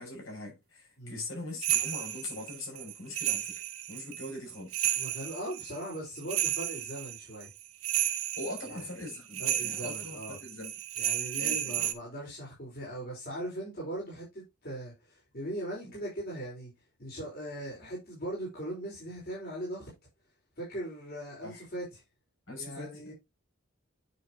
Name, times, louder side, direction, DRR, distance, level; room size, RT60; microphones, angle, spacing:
voice 1, 0.0-4.9 8.4-10.7 11.4-11.9 15.8-15.9 21.4-21.6 22.5-23.1, left 2 dB, 65° left, 6.1 m, -42 dB
sound 1, 1.6-11.9, right 12 dB, 85° right, 1.0 m, -33 dB
voice 2, 4.9-7.5 8.6-8.8 9.4-10.4 11.0-16.7 17.0-19.9 20.6-22.0 22.6-23.1, right 1 dB, 45° left, 4.7 m, -39 dB
9.3 x 6.5 x 2.9 m
head